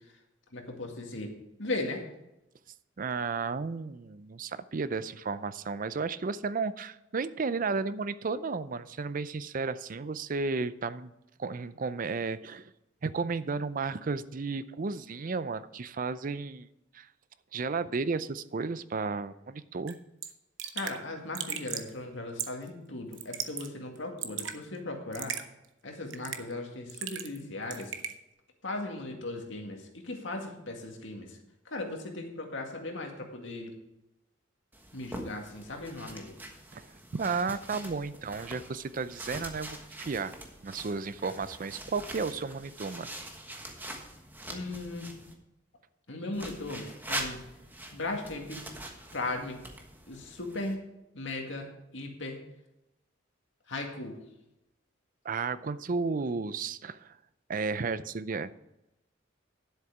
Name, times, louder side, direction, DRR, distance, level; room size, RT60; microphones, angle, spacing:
voice 1, 0.5-1.3 1.6-2.0 20.7-25.3 25.8-27.9 28.6-31.3 31.7-33.7 34.9-36.3 44.5-45.1 46.1-47.4 47.9-48.6 49.1-49.6 50.1-50.8 51.1-51.7 51.9-52.4 53.7-54.2, left 2 dB, 75° left, 2 dB, 2.0 m, -37 dB
voice 2, 3.0-11.1 11.4-12.7 13.0-16.7 16.9-17.1 17.5-20.0 36.7-40.3 40.6-43.1 55.2-57.2 57.5-58.5, right 4 dB, 45° right, 15 dB, 0.5 m, -33 dB
Raindrop / Drip, 19.9-20.0 20.2-20.3 20.6-21.0 21.3-21.9 22.4-22.7 23.1-23.7 24.0-24.6 25.1-25.4 26.1-26.5 26.9-27.4 27.7-28.1, right 9 dB, 75° right, 0.9 m, -36 dB
sound 1, 34.7-45.3 46.3-50.7, right 1 dB, 10° right, 1.3 m, -43 dB
10.5 x 7.9 x 4.9 m, 0.90 s
head